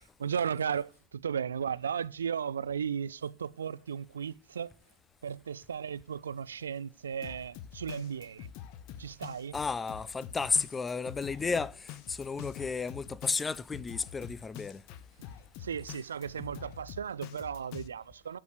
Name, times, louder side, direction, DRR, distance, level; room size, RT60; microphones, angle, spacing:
voice 1, 0.2-4.7 5.2-8.5 9.0-9.6 15.6-18.4, right 7 dB, 70° right, 0.4 m, -35 dB
Drum kit, 7.2-17.9, left 10 dB, 40° left, 0.8 m, -46 dB
voice 2, 9.5-14.8, left 4 dB, 15° left, 0.4 m, -33 dB
10.5 x 5.4 x 6.5 m
figure-of-eight pair, 90°, 0 cm